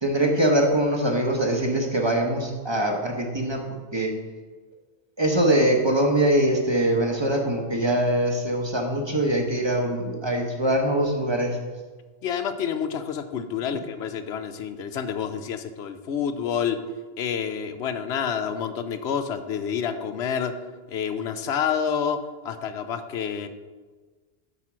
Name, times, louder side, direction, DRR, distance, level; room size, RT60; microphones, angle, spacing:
voice 1, 0.0-4.1 5.2-11.6, right 1 dB, 25° right, 2 dB, 0.9 m, -23 dB
voice 2, 12.2-16.8 17.2-20.5 20.9-23.5, left 7 dB, 80° left, 9 dB, 0.8 m, -28 dB
8.1 x 4.4 x 6.0 m, 1.4 s
omnidirectional pair, 1.1 m